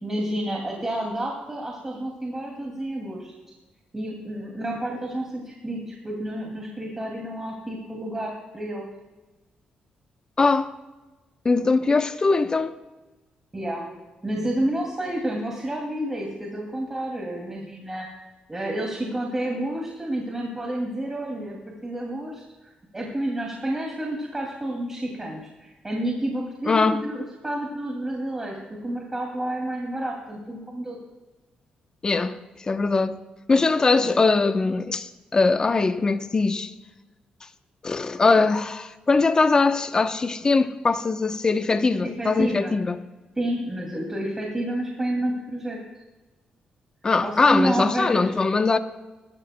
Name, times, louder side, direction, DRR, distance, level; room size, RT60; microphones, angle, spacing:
voice 1, 0.0-3.3 3.9-8.9 13.5-13.9 14.2-18.1 18.5-31.0 42.0-42.7 43.4-45.8 47.2-48.4, right 1 dB, 20° right, 2.4 m, -30 dB
voice 2, 10.4-10.7 11.4-12.7 26.7-27.0 32.0-33.2 33.5-36.7 37.8-43.0 47.0-48.8, left 3 dB, 30° left, 0.8 m, -21 dB
20.5 x 12.5 x 2.2 m
cardioid pair, 100°, 3 cm